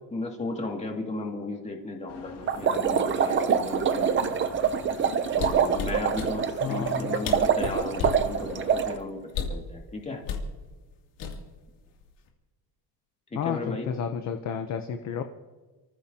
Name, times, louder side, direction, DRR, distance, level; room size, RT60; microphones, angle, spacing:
voice 1, 0.1-4.5 5.3-10.2 13.3-13.9, left 2 dB, 15° left, 0 dB, 2.3 m, -35 dB
sound 1, 2.1-9.0, left 5 dB, 60° left, 2.6 m, -46 dB
sound 2, 2.5-8.9, right 7 dB, 25° right, 0.6 m, -25 dB
sound 3, 5.3-6.3 7.0-7.1 7.2-8.3 9.3-9.7 10.3-10.5 11.2-11.7 12.0-12.3, left 6 dB, 80° left, 2.9 m, -32 dB
voice 2, 6.6-7.2 13.3-15.2, left 7 dB, 40° left, 6 dB, 0.8 m, -31 dB
30.0 x 15.0 x 2.9 m, 1.2 s
cardioid pair, 175°, 45 cm